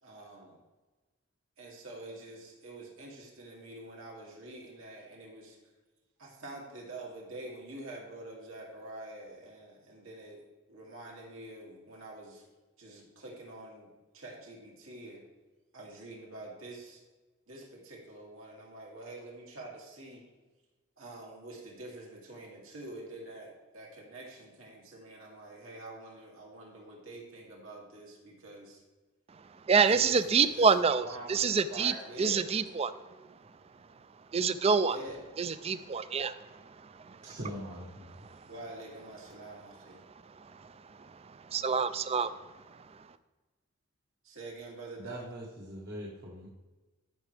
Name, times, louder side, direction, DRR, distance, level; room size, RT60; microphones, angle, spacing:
voice 1, 0.0-0.6 1.6-5.6 6.2-12.4 12.8-13.9 14.1-15.2 15.7-17.0 17.5-20.2 21.0-28.8 29.9-30.7 31.0-32.5 34.9-35.3 38.5-40.0 44.2-45.3, right 2 dB, 75° right, -3 dB, 2.6 m, -46 dB
voice 2, 29.7-31.0 31.3-32.9 34.3-35.0 35.4-36.4 36.8-37.2 38.3-38.4 40.6-40.7 41.0-42.3, right 5 dB, 30° right, 13 dB, 0.4 m, -27 dB
voice 3, 37.2-38.4 45.0-46.5, equal, 55° right, -4 dB, 1.5 m, -42 dB
14.0 x 6.1 x 3.4 m, 1.2 s
head